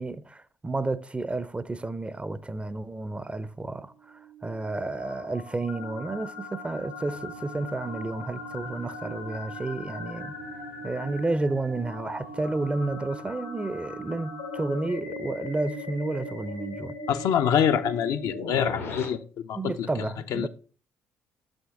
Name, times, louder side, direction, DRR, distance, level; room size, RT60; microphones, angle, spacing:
voice 1, 0.0-10.4 10.8-17.0 19.5-20.5, right 2 dB, 15° right, 0.5 m, -31 dB
sound 1, 4.0-19.1, left 2 dB, 90° left, 1.4 m, -39 dB
sound 2, 7.1-12.9, equal, 85° right, 0.8 m, -52 dB
voice 2, 17.1-19.9 20.3-20.5, left 8 dB, 60° left, 0.5 m, -25 dB
6.3 x 6.2 x 3.5 m
hypercardioid pair, 45°, 7 cm